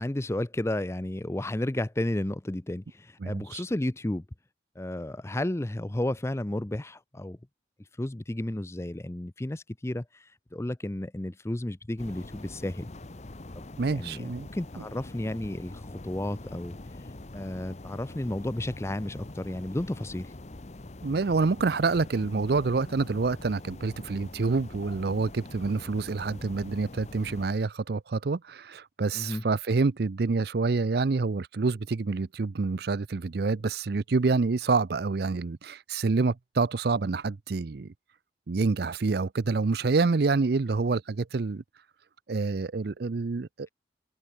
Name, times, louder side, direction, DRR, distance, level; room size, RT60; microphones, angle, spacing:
voice 1, 0.0-4.2 4.8-7.4 8.0-12.9 13.9-17.1 17.3-20.3 29.1-29.4, left 1 dB, 15° left, 0.5 m, -32 dB
voice 2, 3.2-3.6 13.8-14.5 21.0-37.9 38.5-41.6 42.3-43.7, right 4 dB, 60° right, 0.5 m, -27 dB
sound 1, 12.0-27.5, left 2 dB, 40° left, 0.9 m, -44 dB
head